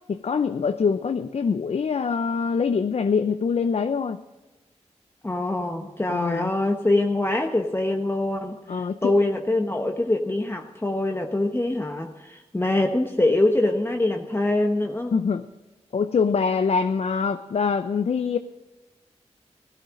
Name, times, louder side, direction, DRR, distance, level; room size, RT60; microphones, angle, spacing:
voice 1, 0.1-4.2 6.1-6.5 8.7-9.1 15.1-15.5 15.9-18.4, left 5 dB, 65° left, 9 dB, 0.6 m, -24 dB
voice 2, 5.2-15.1, left 2 dB, 20° left, 3 dB, 1.1 m, -24 dB
16.5 x 12.5 x 3.8 m, 1.2 s
cardioid pair, 45°, 12 cm